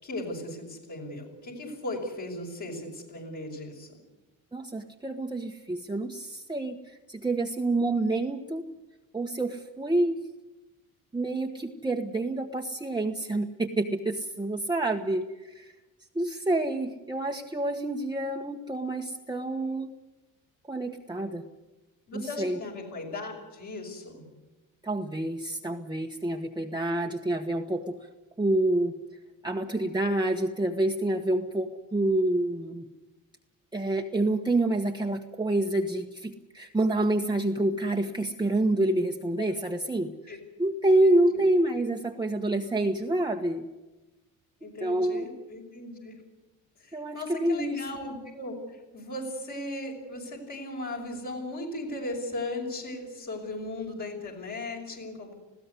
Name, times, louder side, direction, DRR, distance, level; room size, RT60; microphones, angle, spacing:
voice 1, 0.0-3.9 22.1-24.2 39.6-39.7 40.3-40.4 41.0-41.4 44.6-46.2 46.8-55.3, left 2 dB, 50° left, -1 dB, 6.0 m, -37 dB
voice 2, 4.5-8.6 9.1-10.2 11.1-15.7 16.1-19.9 20.7-21.5 22.1-22.6 24.8-28.1 28.4-29.0 29.4-32.9 33.7-40.3 40.6-43.7 44.8-45.3 46.9-47.9, right 1 dB, 10° right, 2 dB, 1.3 m, -28 dB
20.0 x 15.5 x 9.7 m, 1.1 s
supercardioid pair, 80°, 38 cm